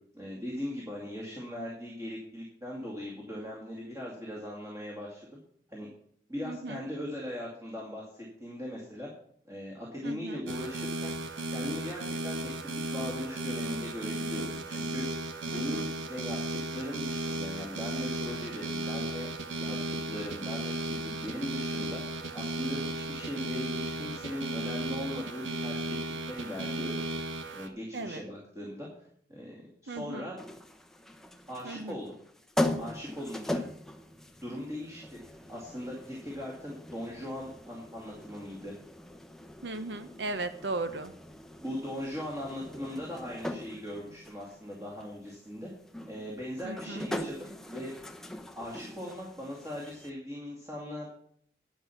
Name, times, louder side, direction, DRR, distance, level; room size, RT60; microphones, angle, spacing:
voice 1, 0.1-5.2 5.7-5.9 6.3-9.1 9.5-11.1 11.5-12.6 12.9-16.4 16.7-19.3 19.6-22.0 22.3-25.8 26.3-27.0 27.5-30.4 31.5-32.1 32.8-33.6 34.4-38.7 41.6-45.7 46.1-47.9 48.6-51.1, left 1 dB, 15° right, -3 dB, 2.4 m, -39 dB
voice 2, 6.4-6.8 10.0-10.4 15.5-15.9 27.9-28.2 29.9-30.3 31.6-32.0 39.6-41.1 46.6-47.1, right 2 dB, 70° right, 10 dB, 0.8 m, -37 dB
sound 1, 10.5-27.7, right 1 dB, 90° right, 1.2 m, -35 dB
sound 2, 30.4-50.1, left 1 dB, 5° left, 0.7 m, -40 dB
10.5 x 8.4 x 5.9 m, 0.63 s
head